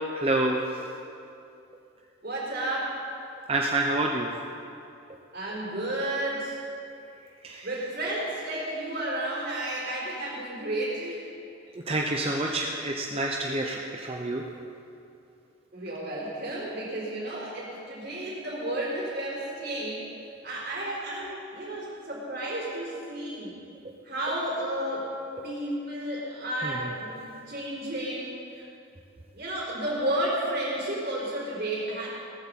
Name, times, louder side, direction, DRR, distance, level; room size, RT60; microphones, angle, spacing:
voice 1, 0.1-0.6 3.5-4.3 7.4-7.7 11.9-14.4 26.6-26.7, right 2 dB, 30° right, 0 dB, 0.8 m, -27 dB
voice 2, 2.2-3.0 5.3-6.6 7.6-11.2 12.4-12.7 15.7-20.1 20.4-23.6 24.0-25.1 25.4-28.7 29.3-32.1, right 1 dB, 50° right, -6 dB, 4.1 m, -32 dB
18.0 x 14.5 x 4.2 m, 2.6 s
head